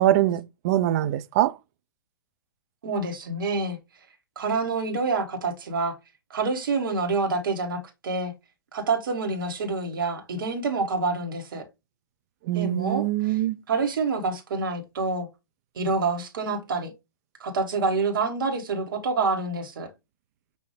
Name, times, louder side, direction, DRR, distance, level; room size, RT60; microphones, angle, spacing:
voice 1, 0.0-1.5 12.5-13.6, right 13 dB, 45° right, 0.4 m, -23 dB
voice 2, 2.8-3.8 4.4-6.0 6.3-8.3 8.7-11.6 12.5-13.4 13.7-15.3 15.7-16.9 17.4-19.9, right 3 dB, 65° right, 1.4 m, -27 dB
5.6 x 2.7 x 3.2 m
hypercardioid pair, 115°, 12 cm